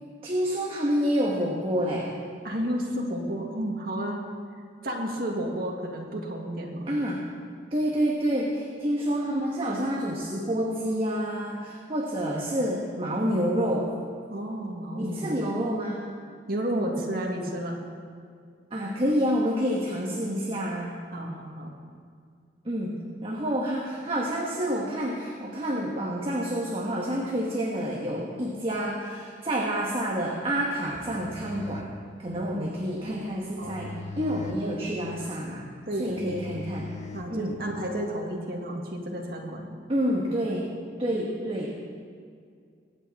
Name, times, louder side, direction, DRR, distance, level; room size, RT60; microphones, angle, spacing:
voice 1, 0.2-2.1 6.9-7.2 7.7-13.9 15.0-16.0 18.7-21.0 22.6-31.9 32.2-35.7 35.9-36.9 37.3-37.6 39.9-40.7 41.0-41.8, equal, 30° right, -2 dB, 1.4 m, -28 dB
voice 2, 2.4-4.2 4.8-6.9 14.3-15.4 16.5-17.8 21.1-21.7 32.5-32.6 33.6-33.8 35.9-36.4 37.1-39.7, right 1 dB, 55° right, -1 dB, 2.2 m, -31 dB
sound 1, 30.9-37.8, left 3 dB, 40° left, 0.9 m, -42 dB
23.5 x 8.8 x 4.2 m, 2.2 s
head